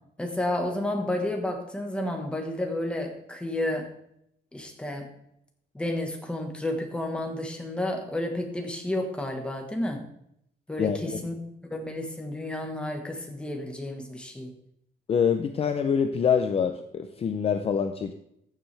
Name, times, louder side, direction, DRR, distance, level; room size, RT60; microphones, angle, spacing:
voice 1, 0.2-3.9 4.5-5.1 5.7-10.0 10.7-14.5, left 1 dB, 5° left, 3 dB, 1.4 m, -31 dB
voice 2, 10.8-11.3 15.1-18.1, left 7 dB, 35° left, 7 dB, 0.5 m, -25 dB
14.5 x 7.0 x 3.4 m, 0.74 s
wide cardioid pair, 170°, 17 cm